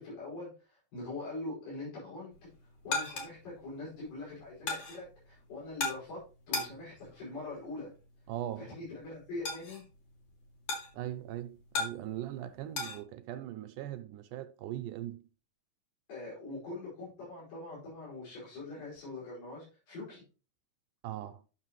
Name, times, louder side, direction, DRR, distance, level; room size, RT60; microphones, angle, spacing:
voice 1, 0.0-2.3 2.8-6.2 6.5-7.9 8.6-9.8 16.1-20.2, left 2 dB, 80° left, 7.0 m, -43 dB
sound 1, 2.3-13.0, left 3 dB, 60° left, 3.6 m, -40 dB
voice 2, 8.3-8.7 10.9-15.2 21.0-21.4, right 12 dB, 80° right, 2.0 m, -40 dB
11.0 x 6.3 x 3.0 m
omnidirectional pair, 3.9 m